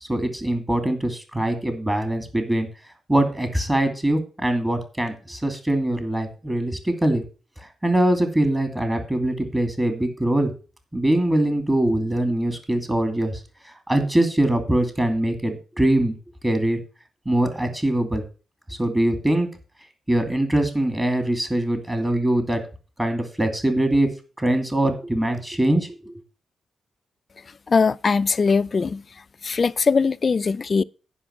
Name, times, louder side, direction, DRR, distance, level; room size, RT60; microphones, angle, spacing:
voice 1, 0.1-2.7 3.1-7.2 7.6-10.5 10.9-13.4 13.9-16.2 16.4-16.8 17.3-18.2 18.8-19.5 20.1-22.6 23.0-24.1 24.4-26.1, right 1 dB, 15° right, 2.4 m, -22 dB
voice 2, 27.7-29.0 29.4-30.8, left 5 dB, 40° left, 0.4 m, -20 dB
10.0 x 5.3 x 7.1 m
cardioid pair, 100°, 0 cm